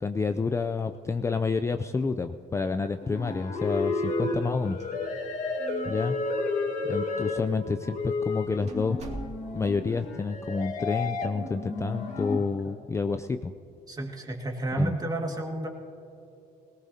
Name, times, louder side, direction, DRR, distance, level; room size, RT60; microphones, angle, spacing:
voice 1, 0.0-4.8 5.9-6.2 6.8-9.0 9.5-13.5 14.8-14.9, left 4 dB, 15° left, 9 dB, 0.4 m, -29 dB
sound 1, 3.0-12.4, left 3 dB, 50° left, 1.7 m, -31 dB
sound 2, 4.8-5.4 5.7-5.8 6.5-6.6 7.4-7.6 8.0-8.1 8.7-9.8, right 1 dB, 40° right, 2.2 m, -42 dB
voice 2, 13.9-15.7, right 1 dB, 20° right, 1 dB, 1.9 m, -31 dB
19.5 x 18.0 x 2.8 m, 2.8 s
cardioid pair, 110°, 17 cm